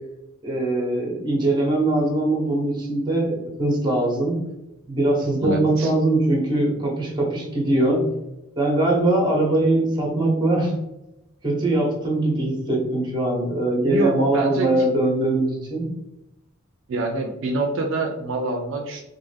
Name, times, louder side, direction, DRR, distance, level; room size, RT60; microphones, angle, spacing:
voice 1, 0.4-4.4 4.9-8.0 8.6-10.7 11.4-15.9, right 2 dB, 20° right, -1 dB, 0.7 m, -21 dB
voice 2, 5.4-5.9 13.8-14.8 16.9-19.0, right 2 dB, 65° right, 2 dB, 0.4 m, -26 dB
2.4 x 2.2 x 3.2 m, 0.92 s
head